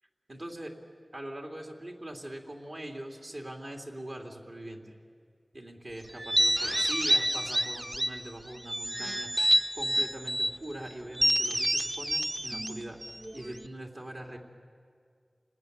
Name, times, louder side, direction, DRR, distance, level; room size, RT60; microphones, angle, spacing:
voice 1, 0.3-0.7 1.1-5.0 5.5-9.5 9.7-13.0 13.3-14.4, right 1 dB, 60° right, 2 dB, 3.2 m, -42 dB
sound 1, 6.2-8.2 8.7-10.6 11.1-13.7, right 1 dB, 25° right, 0.8 m, -28 dB
29.5 x 19.5 x 9.6 m, 2.2 s
wide cardioid pair, 65°, 0 cm